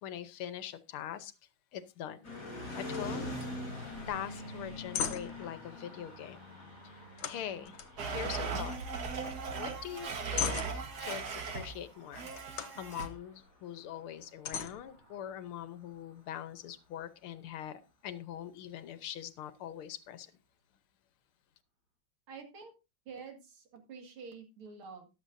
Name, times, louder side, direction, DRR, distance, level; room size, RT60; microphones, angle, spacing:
voice 1, 0.0-1.3 1.7-2.3 2.7-3.7 4.1-6.5 6.8-8.8 9.5-12.3 12.7-20.3, left 10 dB, 85° left, 1.9 m, -43 dB
sound 1, 2.2-16.3, left 1 dB, 45° left, 6.3 m, -46 dB
sound 2, 2.9-3.1 3.4-3.5 3.9-4.2 4.6-5.5 7.2-8.6 8.9-9.4 9.8-11.2 12.3-13.1 13.7-13.8 14.4-15.5, left 8 dB, 70° left, 1.8 m, -39 dB
Domestic sounds home sounds, 8.0-11.8 12.1-13.1, right 5 dB, 50° right, 1.9 m, -38 dB
voice 2, 22.3-22.7 23.1-25.1, right 5 dB, 75° right, 2.9 m, -48 dB
14.0 x 11.0 x 2.6 m
omnidirectional pair, 2.3 m